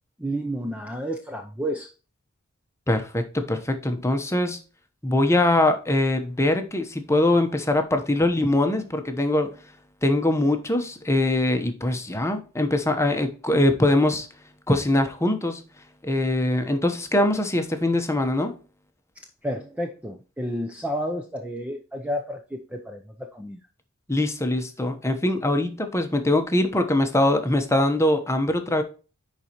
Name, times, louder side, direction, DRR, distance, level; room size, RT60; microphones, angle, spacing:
voice 1, 0.2-1.9 19.4-23.6, equal, 5° right, 0.6 m, -31 dB
voice 2, 2.9-4.6 5.0-9.5 10.0-14.3 14.7-15.6 16.0-18.5 24.1-28.8, left 1 dB, 15° left, 1.0 m, -22 dB
10.0 x 4.2 x 3.0 m
head